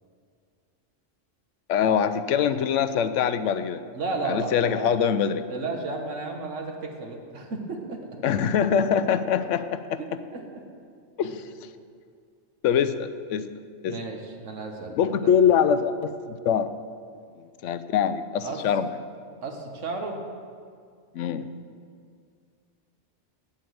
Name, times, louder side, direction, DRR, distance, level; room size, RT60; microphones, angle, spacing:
voice 1, 1.7-3.8 4.2-5.5 8.2-10.0 11.2-11.3 12.6-13.5 13.8-13.9 15.0-16.7 17.6-18.9 21.1-21.5, left 8 dB, 80° left, 12 dB, 0.9 m, -23 dB
voice 2, 3.9-4.9 5.5-8.2 10.0-10.6 11.2-11.3 13.9-15.3 18.4-18.6 19.4-20.2, right 3 dB, 80° right, 2 dB, 1.6 m, -33 dB
8.5 x 8.5 x 7.8 m, 2.2 s
omnidirectional pair, 1.3 m